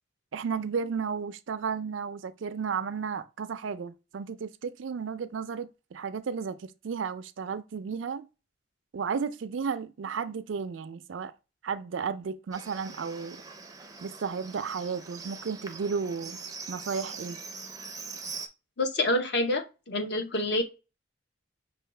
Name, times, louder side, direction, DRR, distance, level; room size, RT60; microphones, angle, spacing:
voice 1, 0.3-8.3 8.9-11.3 11.6-13.4 14.0-16.4 16.7-17.4, right 6 dB, 80° right, 0.4 m, -33 dB
Livestock farm animals working animals, 12.5-18.5, right 5 dB, 20° right, 0.4 m, -42 dB
voice 2, 18.8-20.6, left 1 dB, 60° left, 0.8 m, -27 dB
5.5 x 2.3 x 3.2 m
head